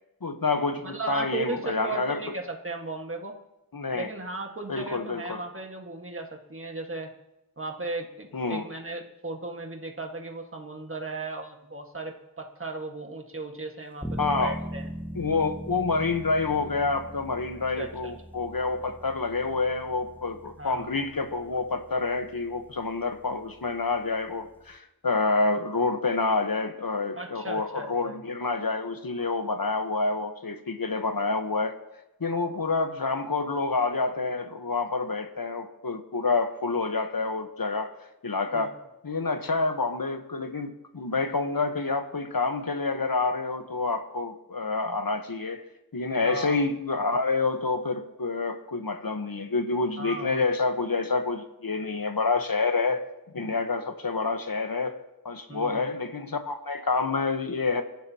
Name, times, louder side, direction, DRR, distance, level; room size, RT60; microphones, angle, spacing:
voice 1, 0.2-2.2 3.7-4.1 4.7-5.4 8.3-8.6 14.2-14.6 15.1-31.8 32.2-37.9 38.2-38.8 39.0-45.6 45.9-53.1 53.3-55.0 55.2-57.8, left 3 dB, 65° left, 7 dB, 1.2 m, -28 dB
voice 2, 0.8-3.3 3.9-7.1 7.6-14.9 17.8-18.1 20.6-20.9 27.1-28.2 38.5-38.7 46.2-46.6 50.0-50.4 55.5-55.9, right 3 dB, 35° right, 2 dB, 1.7 m, -36 dB
sound 1, 14.0-24.8, equal, 5° left, 1.2 m, -41 dB
27.5 x 11.5 x 2.9 m, 0.94 s
wide cardioid pair, 50°, 38 cm